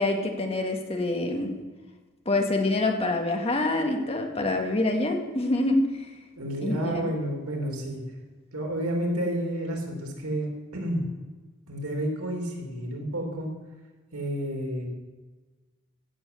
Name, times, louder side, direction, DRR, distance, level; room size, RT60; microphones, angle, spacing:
voice 1, 0.0-1.5 2.3-6.1 6.6-7.1, left 2 dB, 30° left, 3 dB, 1.7 m, -26 dB
voice 2, 6.4-8.0 8.5-11.0 11.7-13.5 14.1-14.9, right 1 dB, 85° right, 1 dB, 3.4 m, -30 dB
15.0 x 7.7 x 6.9 m, 1.3 s
head